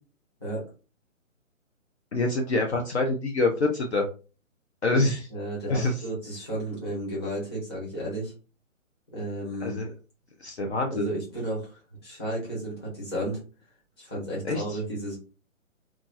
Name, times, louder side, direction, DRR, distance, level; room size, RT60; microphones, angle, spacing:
voice 1, 2.1-4.1 4.8-5.3 5.7-6.0 9.6-9.9 10.4-11.1 14.4-14.8, left 2 dB, 55° left, 2 dB, 0.5 m, -26 dB
voice 2, 5.3-8.3 9.1-9.8 10.9-13.4 14.0-15.2, right 1 dB, 20° left, -6 dB, 1.1 m, -33 dB
2.7 x 2.3 x 2.6 m, 0.34 s
hypercardioid pair, 175°, 41 cm